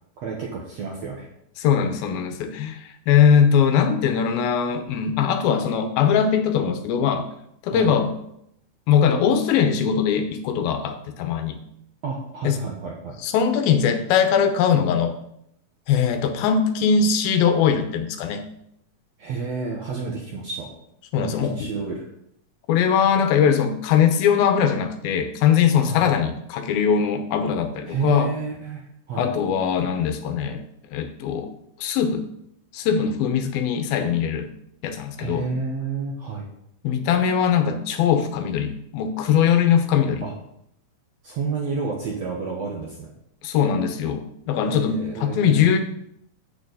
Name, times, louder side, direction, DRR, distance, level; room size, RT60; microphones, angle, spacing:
voice 1, 0.2-1.3 7.7-7.9 12.0-13.2 19.2-20.7 21.2-22.1 25.8-26.0 27.9-28.8 29.1-29.3 35.2-36.5 40.2-40.3 41.2-43.1 44.6-45.7, right 5 dB, 60° right, -2 dB, 1.9 m, -30 dB
voice 2, 1.6-7.3 7.6-8.1 8.9-11.6 12.4-12.6 13.2-15.1 15.9-18.4 21.1-21.7 22.7-28.3 29.2-30.6 30.9-31.5 31.8-32.3 32.7-34.5 34.8-35.5 36.8-40.2 43.4-45.8, left 7 dB, 80° left, 7 dB, 2.6 m, -21 dB
8.5 x 6.9 x 4.0 m, 0.74 s
omnidirectional pair, 4.3 m